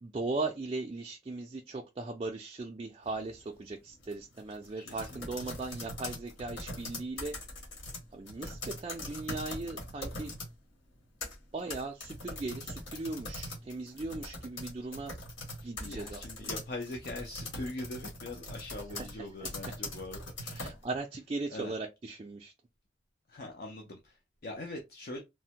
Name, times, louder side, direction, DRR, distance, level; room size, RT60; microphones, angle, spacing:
voice 1, 0.0-7.4 8.1-10.3 11.5-15.2 15.6-16.5 18.9-19.5 20.6-22.5, right 3 dB, 30° right, 0.3 m, -38 dB
sound 1, 3.0-3.4 3.9-10.5 11.0-20.8, left 1 dB, 90° left, 1.5 m, -42 dB
voice 2, 4.8-5.3 5.5-5.6 15.6-20.7 21.5-21.7 23.3-25.2, left 2 dB, 55° left, 0.5 m, -42 dB
3.3 x 2.1 x 2.8 m
head